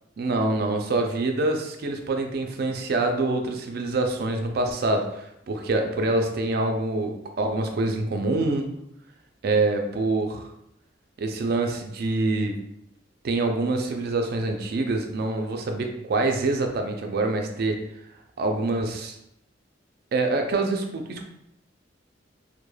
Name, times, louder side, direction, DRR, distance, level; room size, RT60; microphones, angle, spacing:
voice 1, 0.2-8.7 9.4-10.5 11.2-12.6 13.2-17.8 18.4-19.2 20.1-21.2, right 2 dB, 55° right, 4 dB, 0.4 m, -25 dB
3.1 x 2.1 x 2.2 m, 0.80 s
head